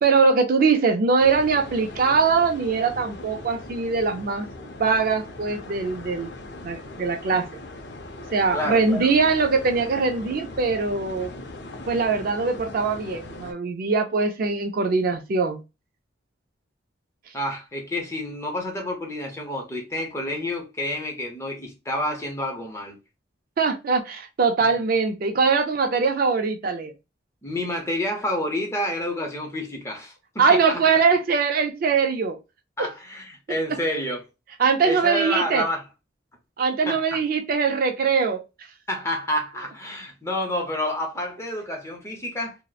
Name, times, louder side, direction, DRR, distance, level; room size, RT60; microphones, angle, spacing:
voice 1, 0.0-4.5 4.8-6.3 6.6-7.5 8.3-11.3 11.9-15.6 23.6-26.9 30.4-32.4 34.6-35.6 36.6-38.4, right 4 dB, 50° right, 0.4 m, -22 dB
sound 1, 1.2-13.5, left 2 dB, 65° left, 0.5 m, -40 dB
voice 2, 8.5-9.1 17.3-23.0 27.4-30.8 32.8-34.2 34.8-35.8 36.9-37.0 38.9-42.6, left 1 dB, 15° left, 0.6 m, -29 dB
2.8 x 2.0 x 2.2 m
head